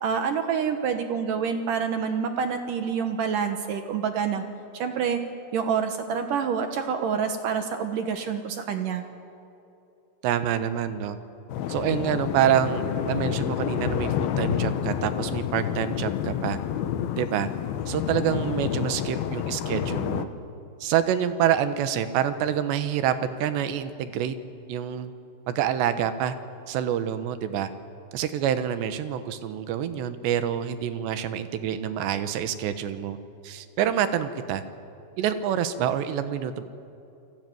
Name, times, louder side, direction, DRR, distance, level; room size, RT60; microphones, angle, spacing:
voice 1, 0.0-4.4 4.7-5.2 5.5-9.0, right 6 dB, 65° right, 7 dB, 2.4 m, -27 dB
voice 2, 10.2-11.2 11.7-16.6 17.2-17.5 17.9-20.3 20.8-24.4 24.7-25.1 25.5-26.4 26.7-27.7 28.1-33.2 33.4-34.6 35.2-36.6, right 9 dB, 80° right, 11 dB, 3.3 m, -27 dB
sound 1, 11.5-20.3, left 10 dB, 70° left, 2.6 m, -29 dB
29.0 x 20.0 x 9.4 m, 2.8 s
omnidirectional pair, 5.1 m